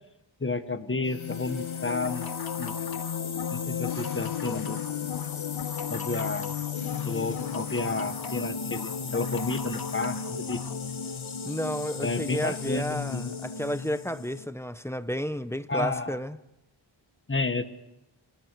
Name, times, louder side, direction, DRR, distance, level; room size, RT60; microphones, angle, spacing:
voice 1, 0.4-2.3 2.6-2.7 3.5-4.8 5.9-6.5 7.0-10.6 12.0-13.3 15.7-16.2 17.3-17.6, left 3 dB, 25° left, 1.3 m, -31 dB
sound 1, 1.0-14.5, left 7 dB, 80° left, 1.6 m, -34 dB
sound 2, 1.9-10.8, left 7 dB, 50° left, 0.9 m, -41 dB
voice 2, 11.4-16.4, equal, 5° left, 0.8 m, -32 dB
30.0 x 25.5 x 4.6 m
wide cardioid pair, 85°, 47 cm